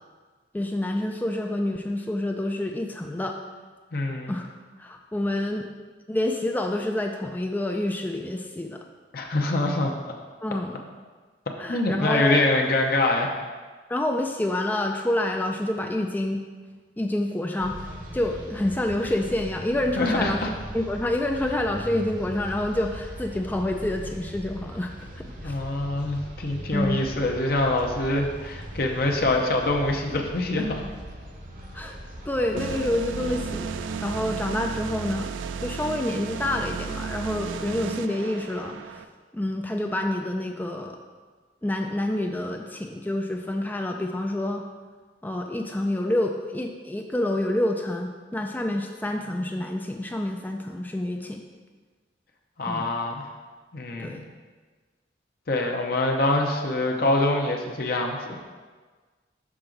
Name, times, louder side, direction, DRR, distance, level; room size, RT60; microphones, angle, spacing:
voice 1, 0.5-3.4 4.3-4.5 4.8-5.7 6.1-8.8 10.4-10.8 11.6-12.4 13.9-16.4 17.0-17.8 18.1-20.4 20.7-25.6 26.7-27.0 31.7-32.0 32.3-35.3 35.6-39.1 39.3-41.0 41.6-44.6 45.2-51.4 52.7-53.0 54.0-54.2, left 1 dB, 10° left, 3 dB, 0.3 m, -28 dB
voice 2, 3.9-4.3 9.1-9.9 11.7-13.3 20.0-20.5 25.4-30.8 52.6-53.3 53.7-54.2 55.5-58.4, left 2 dB, 55° left, 1 dB, 0.7 m, -25 dB
sound 1, 17.6-34.2, equal, 50° right, 0.9 m, -40 dB
sound 2, 32.6-39.0, right 6 dB, 90° right, 0.3 m, -34 dB
6.1 x 5.9 x 3.8 m, 1.4 s
head